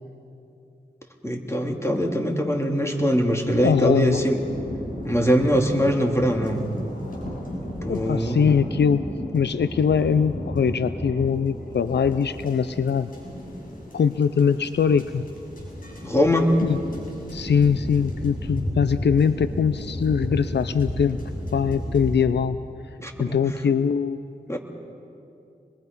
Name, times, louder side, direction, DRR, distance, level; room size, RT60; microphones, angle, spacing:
voice 1, 1.2-4.4 5.0-6.6 7.8-8.4 16.0-16.5 23.0-23.4 24.5-24.6, equal, 15° left, 2 dB, 2.9 m, -22 dB
sound 1, 3.5-22.2, equal, 55° left, 7.0 m, -34 dB
voice 2, 3.6-4.2 7.9-9.0 9.3-13.1 13.9-15.2 16.6-16.8 17.3-21.2 21.5-22.6 23.2-24.2, left 6 dB, 80° left, 13 dB, 0.5 m, -22 dB
26.5 x 21.5 x 5.4 m, 2.6 s
cardioid pair, 40°, 18 cm